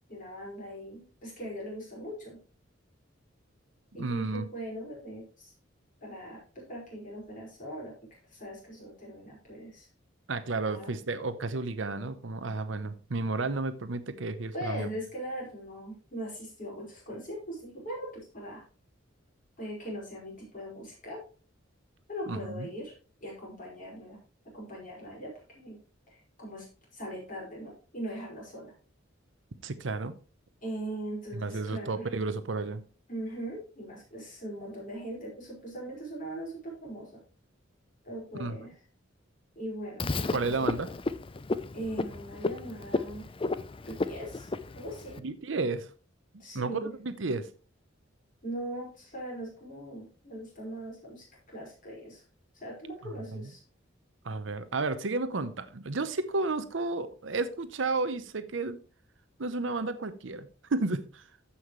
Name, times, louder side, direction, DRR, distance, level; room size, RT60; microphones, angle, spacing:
voice 1, 0.1-2.4 3.9-5.5 6.0-7.9 8.3-9.9 10.6-10.9 14.5-18.6 19.6-21.2 22.1-22.9 23.2-24.2 24.5-25.8 26.1-26.7 26.9-28.7 30.6-32.1 33.1-37.2 38.0-38.8 39.6-40.7 41.7-43.3 43.9-45.2 46.4-46.9 48.4-52.2 52.5-53.6, right 1 dB, 45° left, -3 dB, 5.3 m, -40 dB
voice 2, 4.0-4.4 10.3-14.9 22.3-22.7 29.6-30.2 31.3-32.8 38.4-38.6 40.3-40.9 45.2-45.9 46.5-47.5 54.2-58.8 59.4-61.2, right 3 dB, 70° right, 11 dB, 0.8 m, -32 dB
Frog, 40.0-45.2, left 3 dB, 30° left, 0.5 m, -33 dB
14.5 x 5.7 x 3.2 m, 0.37 s
head